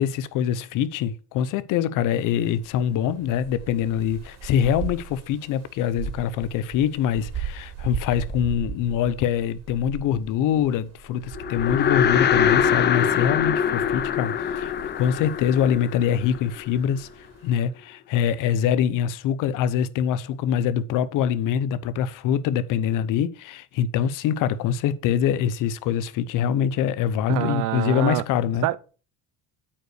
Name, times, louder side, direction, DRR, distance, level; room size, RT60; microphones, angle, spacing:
voice 1, 0.0-28.7, left 9 dB, 60° left, 0.9 m, -24 dB
sound 1, 2.1-17.5, right 6 dB, 50° right, 2.8 m, -39 dB
sound 2, 11.4-16.8, left 8 dB, 30° left, 0.6 m, -23 dB
voice 2, 27.3-28.2 28.6-28.8, right 16 dB, 65° right, 0.8 m, -25 dB
8.6 x 5.5 x 6.5 m
cardioid pair, 135°, 35 cm